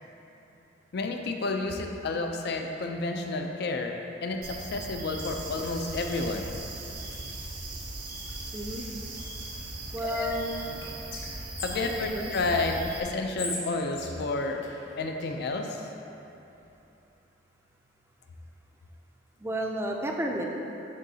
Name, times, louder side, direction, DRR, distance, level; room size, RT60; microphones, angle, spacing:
voice 1, 0.9-3.9 4.2-6.6 10.0-10.4 11.6-14.6 15.0-15.8, left 3 dB, 60° left, 3 dB, 0.5 m, -30 dB
sound 1, 4.4-13.0, right 2 dB, 55° right, 0.7 m, -39 dB
sound 2, 5.2-11.3, right 3 dB, 75° right, 1.4 m, -47 dB
voice 2, 8.5-8.8 9.9-10.5 11.9-12.3 19.4-20.5, right 1 dB, 15° right, 0 dB, 0.4 m, -32 dB
Whispering, 10.5-12.5 13.1-15.3, left 3 dB, 85° left, 1.0 m, -40 dB
10.0 x 3.7 x 2.8 m, 3.0 s
head